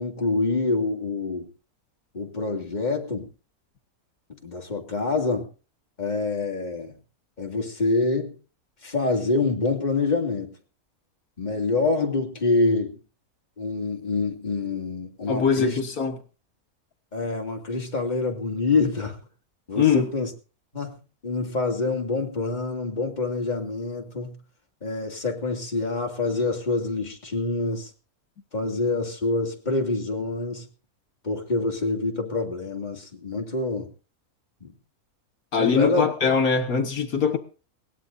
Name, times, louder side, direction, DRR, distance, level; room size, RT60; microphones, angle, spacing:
voice 1, 0.0-1.5 2.1-3.3 4.4-5.5 6.0-6.9 7.4-8.4 8.8-10.5 11.4-13.0 13.6-15.8 17.1-19.2 19.7-20.3 20.7-21.0 21.2-24.3 24.8-27.9 28.5-30.7 31.2-33.9 34.6-34.7 35.6-36.1, left 3 dB, 30° left, 2.7 m, -26 dB
voice 2, 15.3-16.2 19.8-20.1 35.5-37.4, left 6 dB, 75° left, 2.0 m, -22 dB
22.0 x 18.0 x 2.7 m
omnidirectional pair, 1.5 m